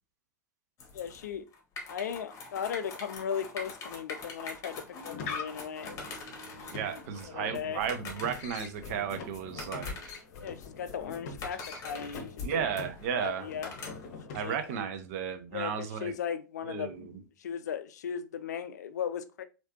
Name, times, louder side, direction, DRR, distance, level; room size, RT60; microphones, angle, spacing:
sound 1, 0.8-14.2, left 3 dB, 35° left, 1.2 m, -44 dB
voice 1, 0.9-1.4 1.9-5.9 7.2-7.8 10.4-12.6 13.1-13.7 14.4-14.6 15.5-19.4, left 8 dB, 70° left, 0.4 m, -37 dB
sound 2, 4.8-14.8, left 4 dB, 55° left, 0.8 m, -44 dB
voice 2, 6.7-10.2 12.4-13.5 14.3-16.2 16.6-17.2, right 8 dB, 55° right, 0.6 m, -34 dB
3.2 x 2.9 x 2.8 m
figure-of-eight pair, 85°, 10 cm